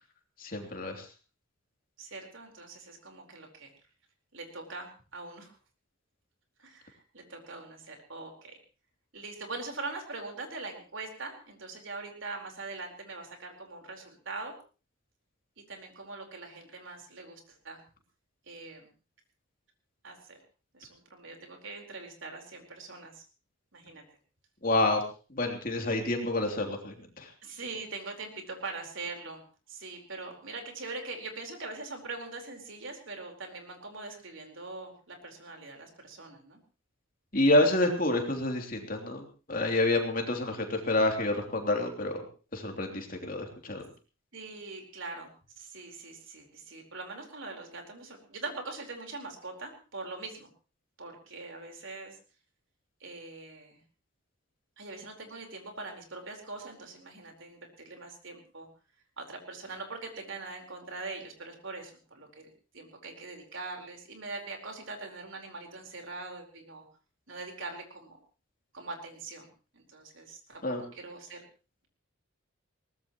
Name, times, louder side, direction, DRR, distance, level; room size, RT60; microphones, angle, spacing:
voice 1, 0.4-1.0 24.6-25.0 25.3-27.3 37.3-42.2 42.5-43.8 70.6-70.8, left 2 dB, 40° left, 2 dB, 3.1 m, -28 dB
voice 2, 2.0-3.7 4.3-5.6 6.6-8.6 9.1-14.6 15.7-17.8 18.5-18.9 20.0-20.4 20.7-23.2 23.7-24.0 27.4-29.4 29.7-36.6 44.3-50.5 51.0-52.2 53.0-53.8 54.8-58.7 59.2-66.9 67.3-68.2 68.7-69.5 69.7-70.6 70.9-71.4, right 3 dB, 65° right, 3 dB, 4.4 m, -42 dB
21.5 x 19.0 x 3.1 m, 0.35 s
head